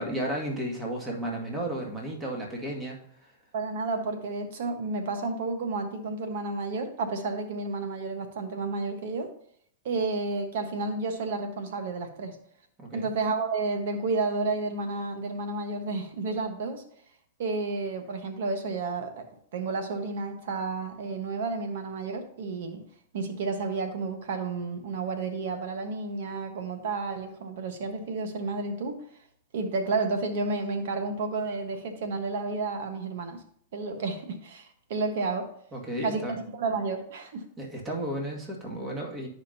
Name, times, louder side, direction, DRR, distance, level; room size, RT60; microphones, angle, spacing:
voice 1, 0.0-3.0 12.8-13.1 35.7-36.3 37.6-39.3, right 1 dB, 20° right, -1 dB, 2.0 m, -33 dB
voice 2, 3.5-9.3 9.8-12.4 12.9-16.8 17.4-19.2 19.5-22.8 23.1-29.0 29.5-33.4 33.7-35.5 36.0-37.4, right 3 dB, 70° right, 6 dB, 1.3 m, -31 dB
11.0 x 5.1 x 2.8 m, 0.64 s
hypercardioid pair, 115°, 0 cm